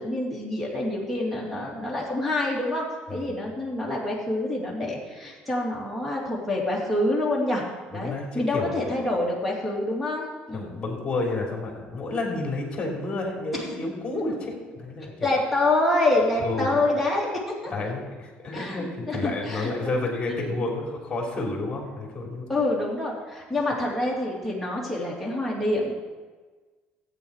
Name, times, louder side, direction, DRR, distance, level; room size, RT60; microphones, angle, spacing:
voice 1, 0.0-7.6 7.9-10.8 13.5-13.7 15.2-17.7 18.5-20.0 20.3-20.6 22.5-25.9, left 2 dB, ahead, -3 dB, 3.0 m, -27 dB
voice 2, 7.9-8.9 10.5-15.3 16.4-16.8 17.6-22.5, left 2 dB, 25° left, -1 dB, 3.3 m, -30 dB
14.0 x 8.4 x 4.9 m, 1.4 s
cardioid pair, 115°, 4 cm